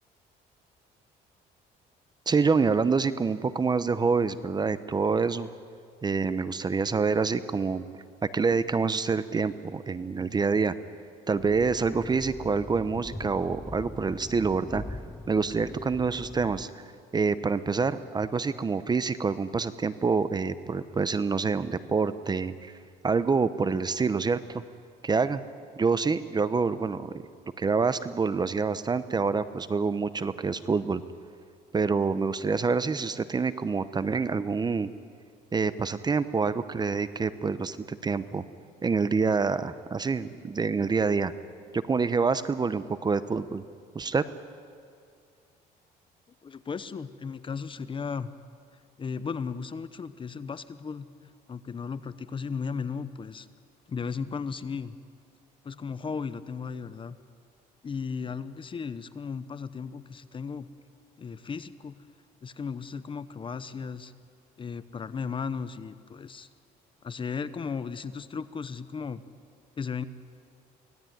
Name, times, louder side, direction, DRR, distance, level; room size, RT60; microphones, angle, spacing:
voice 1, 2.3-5.5 6.0-7.9 8.3-10.7 11.3-14.8 15.3-16.7 17.1-22.7 23.0-24.6 25.0-25.4 25.8-27.1 27.6-31.0 31.7-34.9 35.5-38.4 38.8-41.3 41.7-43.6 43.9-44.2, right 4 dB, 25° right, 14 dB, 0.9 m, -26 dB
sound 1, 11.4-16.6, left 2 dB, 5° left, 0.5 m, -42 dB
voice 2, 46.4-48.3 49.0-53.5 53.9-55.0 55.6-57.2 57.8-60.7 61.2-62.0 62.4-64.1 64.6-66.5 67.0-69.2 69.8-70.0, left 5 dB, 30° left, 14 dB, 0.9 m, -35 dB
24.5 x 17.5 x 9.4 m, 2.2 s
cardioid pair, 110°, 17 cm